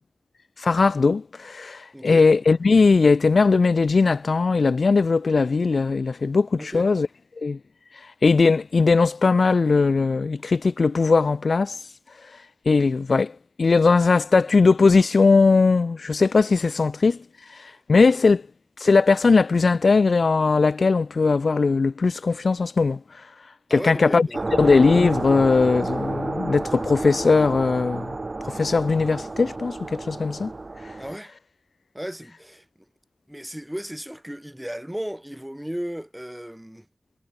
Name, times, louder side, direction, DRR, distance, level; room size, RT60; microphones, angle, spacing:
voice 1, 0.6-7.1 7.4-7.6 8.2-11.8 12.6-17.2 17.6-18.4 18.8-23.0 23.7-24.3 24.6-28.2 28.5-30.5, left 4 dB, 70° left, 1.0 m, -19 dB
voice 2, 1.9-2.3 6.6-6.9 17.7-17.8 23.7-24.6 31.0-31.4 31.9-32.6 33.3-36.9, equal, 5° right, 7.7 m, -35 dB
sound 1, 24.3-31.2, right 2 dB, 45° right, 2.8 m, -31 dB
wide cardioid pair, 55°, 0 cm